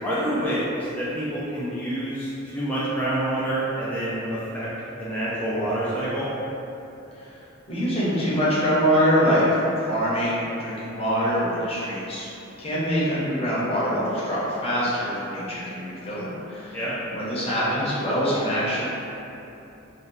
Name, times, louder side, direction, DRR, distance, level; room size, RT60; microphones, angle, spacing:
voice 1, 0.0-4.7 4.9-6.3 16.7-17.0, right 1 dB, 10° left, -10 dB, 0.4 m, -27 dB
voice 2, 7.7-12.3 12.6-16.8 17.0-18.8, equal, 30° left, -8 dB, 0.8 m, -24 dB
2.7 x 2.2 x 3.7 m, 2.9 s
head